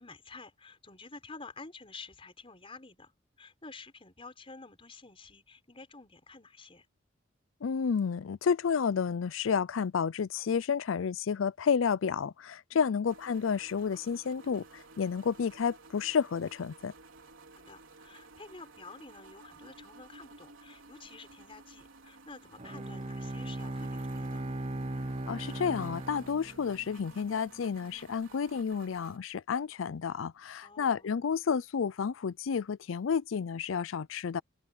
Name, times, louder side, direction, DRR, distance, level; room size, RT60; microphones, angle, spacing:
voice 1, 0.0-3.1 3.4-6.9 12.7-13.0 13.9-14.0 17.6-24.4 30.6-31.1, left 3 dB, 30° left, 4.8 m, -50 dB
voice 2, 7.6-14.6 15.0-16.9 25.3-34.4, left 6 dB, 90° left, 0.5 m, -31 dB
sound 1, 13.0-29.2, right 3 dB, 90° right, 4.2 m, -54 dB
Bowed string instrument, 22.6-27.0, right 1 dB, 35° right, 1.0 m, -38 dB
open air
head